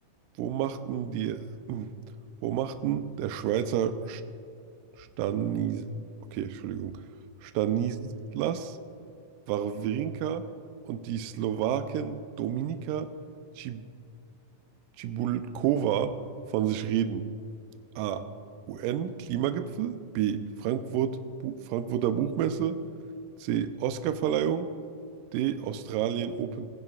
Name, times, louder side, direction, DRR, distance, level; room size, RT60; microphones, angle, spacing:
voice 1, 0.4-1.9 2.4-4.2 5.0-5.9 6.3-7.0 7.4-8.0 8.4-8.8 9.5-10.5 10.9-13.1 13.6-13.8 15.0-16.2 16.5-17.2 18.0-18.2 18.7-22.8 23.4-24.7 25.3-26.7, right 10 dB, 80° right, 9 dB, 2.0 m, -29 dB
19.5 x 11.0 x 2.4 m, 2.4 s
omnidirectional pair, 4.1 m